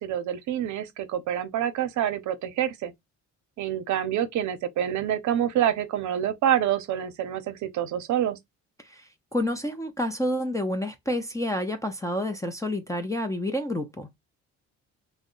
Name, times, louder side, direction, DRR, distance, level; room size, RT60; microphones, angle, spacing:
voice 1, 0.0-2.9 3.6-8.4, right 10 dB, 75° right, 0.7 m, -27 dB
voice 2, 8.8-14.1, left 1 dB, 10° left, 0.5 m, -29 dB
2.7 x 2.1 x 3.8 m
cardioid pair, 90°, 30 cm